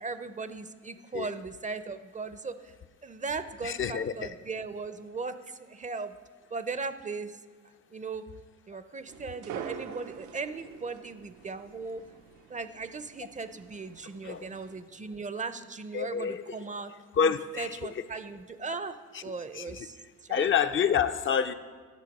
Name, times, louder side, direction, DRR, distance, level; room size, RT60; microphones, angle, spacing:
voice 1, 0.0-2.7 3.0-6.2 6.5-7.4 7.9-8.2 8.7-12.1 12.5-16.9 17.2-20.0 20.2-20.8, right 4 dB, 25° right, 12 dB, 0.5 m, -38 dB
voice 2, 3.6-4.3 14.2-14.5 15.9-16.4 17.2-17.8 19.5-19.9 20.3-21.5, left 7 dB, 45° left, 9 dB, 0.4 m, -27 dB
sound 1, 9.1-14.8, right 8 dB, 85° right, 0.6 m, -46 dB
10.5 x 6.6 x 5.2 m, 1.5 s
cardioid pair, 90°, 30 cm